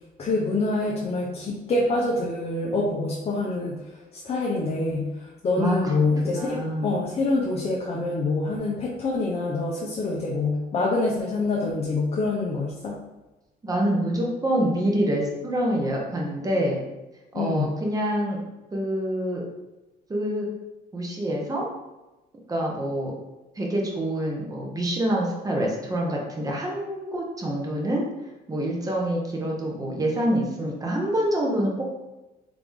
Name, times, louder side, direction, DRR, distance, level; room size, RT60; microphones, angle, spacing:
voice 1, 0.2-12.9 17.3-17.7, left 2 dB, 35° left, -4 dB, 0.8 m, -26 dB
voice 2, 5.6-6.9 13.6-16.8 17.3-18.4 18.7-19.4 20.1-20.5 20.9-21.7 22.5-23.1 23.6-28.1 28.5-31.9, right 1 dB, 20° right, -1 dB, 1.1 m, -26 dB
3.9 x 3.4 x 3.6 m, 1.1 s
cardioid pair, 110°, 17 cm